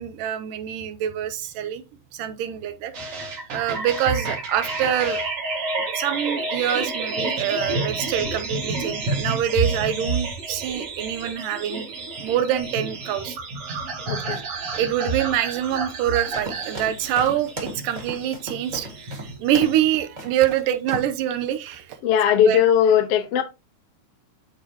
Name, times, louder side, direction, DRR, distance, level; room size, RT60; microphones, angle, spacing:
voice 1, 0.0-1.8 2.1-2.9 3.5-5.2 5.8-11.9 12.2-13.4 14.3-14.4 14.8-22.0 22.3-22.6, right 10 dB, 75° right, 2.3 m, -25 dB
sound 1, 2.9-19.8, right 3 dB, 45° right, 2.6 m, -30 dB
voice 2, 14.1-14.4 22.0-23.4, left 9 dB, 65° left, 1.5 m, -18 dB
sound 2, 16.3-19.8 20.2-20.6 20.9-21.2, right 1 dB, 25° right, 0.9 m, -36 dB
10.5 x 4.7 x 2.9 m
omnidirectional pair, 4.2 m